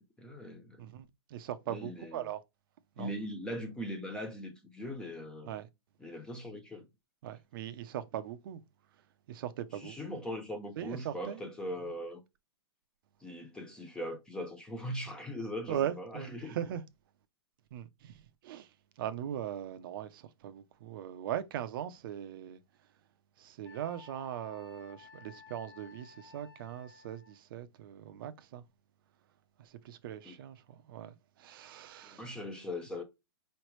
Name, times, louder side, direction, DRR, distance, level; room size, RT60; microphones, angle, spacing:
voice 1, 0.0-0.8 1.7-2.3 3.0-5.6 6.0-6.9 9.7-12.2 13.2-16.6 30.2-30.4 32.1-33.0, equal, 5° left, 0.6 m, -40 dB
voice 2, 0.8-2.4 3.0-3.1 5.4-5.7 7.2-8.6 9.3-10.2 10.8-11.5 15.7-16.8 17.7-18.7 19.0-22.6 23.4-28.6 29.6-32.3, right 10 dB, 50° right, 0.7 m, -40 dB
Wind instrument woodwind instrument, 23.6-27.4, left 5 dB, 55° left, 1.4 m, -55 dB
4.9 x 3.2 x 3.1 m
hypercardioid pair, 145°, 14 cm